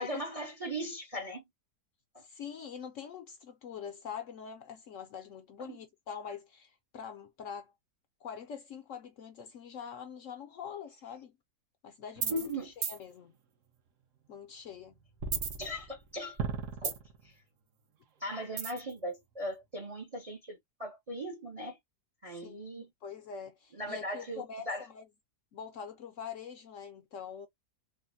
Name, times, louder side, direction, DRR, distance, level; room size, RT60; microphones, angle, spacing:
voice 1, 0.0-1.4 12.3-12.7 15.6-16.4 16.8-17.0 17.2-17.3 18.2-21.8 22.2-22.9 23.8-24.8, equal, 35° right, 0.5 m, -38 dB
voice 2, 2.2-7.7 8.2-11.4 11.8-13.4 14.3-15.0 22.3-25.1 25.5-27.5, left 7 dB, 65° left, 0.8 m, -44 dB
sound 1, 12.2-12.5 12.8-13.0 15.2-16.1 16.4-17.2 18.6-18.9, right 6 dB, 60° right, 1.0 m, -34 dB
3.5 x 2.0 x 2.6 m
omnidirectional pair, 1.7 m